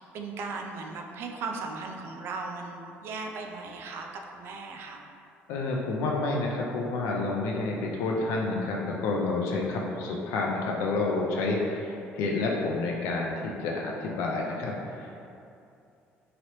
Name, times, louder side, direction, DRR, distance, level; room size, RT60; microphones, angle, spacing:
voice 1, 0.0-5.0, right 4 dB, 55° right, 2 dB, 0.3 m, -37 dB
voice 2, 5.5-15.3, left 3 dB, 90° left, -1 dB, 0.4 m, -29 dB
2.9 x 2.8 x 2.9 m, 2.6 s
cardioid pair, 145°, 5 cm